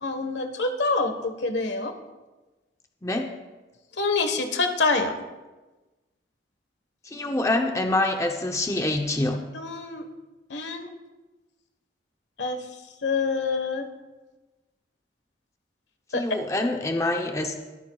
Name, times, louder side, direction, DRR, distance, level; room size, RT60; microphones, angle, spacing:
voice 1, 0.0-1.9 4.0-5.1 9.5-10.0 10.5-10.9 12.4-12.6 13.0-13.9 16.1-16.2, left 3 dB, 75° left, 6 dB, 1.3 m, -26 dB
voice 2, 7.0-9.5 16.1-17.6, left 2 dB, 15° left, 3 dB, 0.7 m, -26 dB
22.0 x 13.5 x 2.4 m, 1.2 s
head